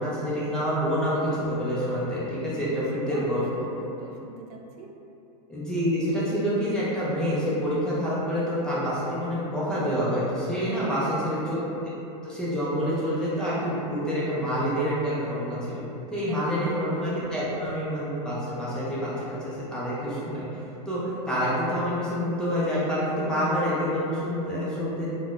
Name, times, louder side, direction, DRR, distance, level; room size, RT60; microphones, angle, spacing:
voice 1, 0.0-3.7 5.5-11.6 12.2-15.8 16.1-20.5 20.9-25.1, equal, 5° left, -10 dB, 0.4 m, -27 dB
voice 2, 2.5-4.9 10.6-11.3 16.3-16.8, right 3 dB, 70° right, 0 dB, 0.4 m, -44 dB
3.5 x 2.1 x 2.4 m, 2.8 s
supercardioid pair, 150°, 20 cm